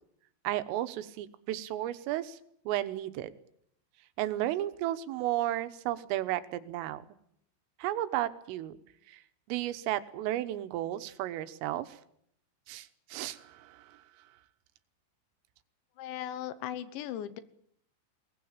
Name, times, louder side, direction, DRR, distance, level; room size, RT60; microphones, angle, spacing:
voice 1, 0.5-2.4 2.7-3.3 4.2-7.0 7.8-8.8 9.1-9.2 9.5-12.0 12.7-14.0, right 14 dB, 90° right, 12 dB, 3.8 m, -33 dB
voice 2, 16.0-17.4, left 11 dB, 75° left, 14 dB, 3.2 m, -38 dB
21.0 x 20.5 x 8.9 m, 0.69 s
omnidirectional pair, 5.7 m